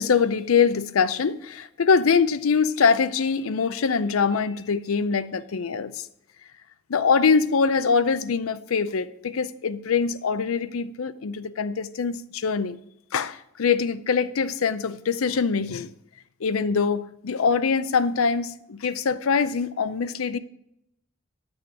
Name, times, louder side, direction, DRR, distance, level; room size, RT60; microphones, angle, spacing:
voice 1, 0.0-6.1 6.9-12.8 13.1-15.9 16.4-20.4, left 5 dB, 85° left, 0.5 m, -23 dB
10.5 x 6.2 x 4.7 m
head